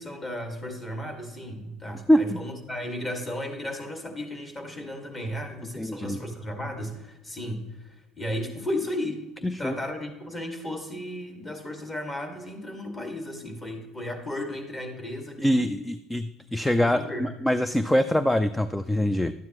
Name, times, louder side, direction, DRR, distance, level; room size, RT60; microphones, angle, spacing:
voice 1, 0.0-15.8 16.7-17.2, left 1 dB, 25° left, 4 dB, 2.2 m, -34 dB
voice 2, 2.1-2.4 5.8-6.2 9.4-9.7 15.4-19.3, equal, 5° left, 12 dB, 0.4 m, -24 dB
12.5 x 9.4 x 3.1 m, 1.1 s
cardioid pair, 115°, 0 cm